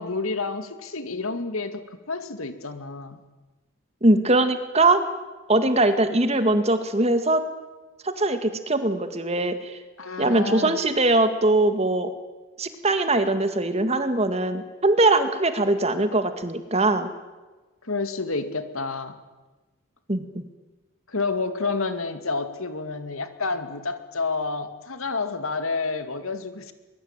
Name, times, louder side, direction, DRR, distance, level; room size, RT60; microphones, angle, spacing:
voice 1, 0.0-1.8 2.1-3.2 10.0-10.8 17.8-19.2 21.1-26.7, left 3 dB, 85° left, 9 dB, 2.4 m, -29 dB
voice 2, 4.0-5.0 5.5-7.4 8.0-9.8 10.2-12.1 12.6-17.1 20.1-20.2, right 2 dB, 30° right, 9 dB, 2.0 m, -21 dB
23.0 x 22.0 x 9.0 m, 1.2 s
head